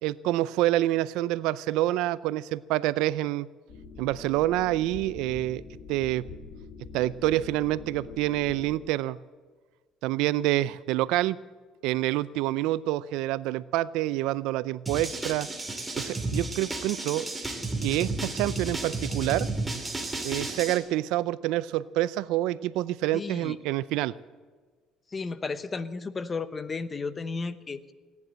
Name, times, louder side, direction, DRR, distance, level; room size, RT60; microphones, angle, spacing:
voice 1, 0.0-3.5 4.0-5.6 5.9-6.2 6.9-9.2 10.0-11.4 11.8-15.5 15.9-17.3 17.8-19.5 20.2-24.1, right 15 dB, 80° right, 18 dB, 0.5 m, -27 dB
sound 1, 3.7-8.8, left 4 dB, 60° left, 2.5 m, -44 dB
sound 2, 14.9-20.8, right 2 dB, 10° right, 2.6 m, -32 dB
voice 2, 23.1-23.6 25.1-27.9, left 4 dB, 30° left, 13 dB, 0.9 m, -33 dB
17.5 x 11.0 x 7.6 m, 1.5 s
cardioid pair, 100°, 0 cm